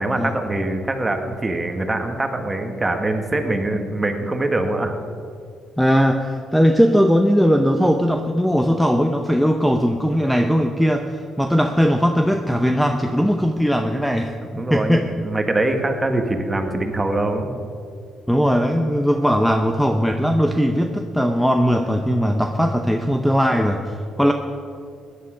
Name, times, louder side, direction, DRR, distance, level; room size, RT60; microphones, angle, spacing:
voice 1, 0.0-4.9 14.5-17.5, right 2 dB, 20° right, 5 dB, 1.6 m, -23 dB
voice 2, 5.8-15.1 18.3-24.3, equal, ahead, 5 dB, 0.8 m, -19 dB
16.0 x 10.5 x 5.1 m, 2.3 s
cardioid pair, 90°, 0 cm